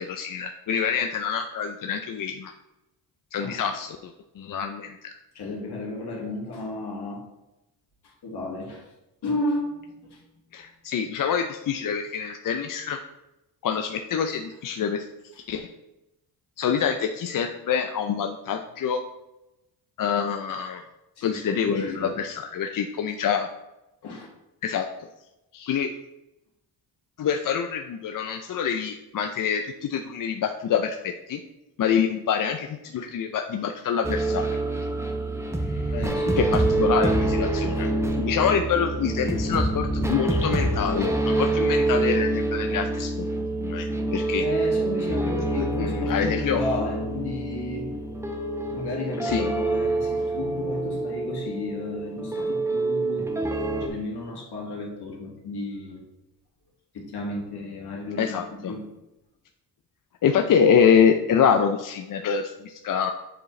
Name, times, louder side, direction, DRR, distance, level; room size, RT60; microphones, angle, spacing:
voice 1, 0.0-2.5 3.3-5.1 10.5-13.0 13.6-15.0 15.5-15.7 16.6-19.0 20.0-20.8 21.2-23.5 24.6-24.9 25.5-25.9 27.2-31.4 31.8-32.7 32.9-34.5 35.7-35.9 36.4-37.9 38.2-43.3 43.6-44.5 45.8-46.6 49.2-49.5 58.2-58.7 60.2-63.1, left 7 dB, 50° left, 5 dB, 0.5 m, -26 dB
voice 2, 5.3-7.2 8.0-8.9 9.2-10.7 21.2-22.2 24.0-24.3 32.9-33.1 35.9-36.6 37.7-37.9 44.4-47.9 48.7-53.3 53.7-56.0 56.9-58.9, left 2 dB, 70° left, -1 dB, 2.1 m, -33 dB
sound 1, 34.0-53.9, right 2 dB, 5° right, 0.8 m, -26 dB
7.5 x 4.6 x 3.2 m, 0.93 s
cardioid pair, 90°, 41 cm